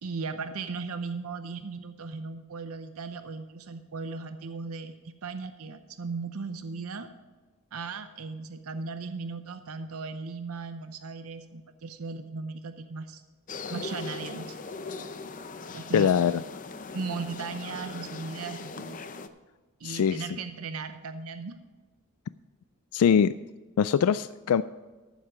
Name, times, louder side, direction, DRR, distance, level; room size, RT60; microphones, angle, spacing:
voice 1, 0.0-7.1 7.7-13.2 13.7-14.6 15.7-16.2 16.9-19.0 19.8-21.5, right 4 dB, 85° right, 9 dB, 0.7 m, -37 dB
sound 1, 13.5-19.3, left 4 dB, 35° left, 0.6 m, -39 dB
voice 2, 15.9-16.4 19.8-20.2 22.9-23.3 23.8-24.6, left 7 dB, 85° left, 14 dB, 0.3 m, -22 dB
14.5 x 7.2 x 4.9 m, 1.3 s
head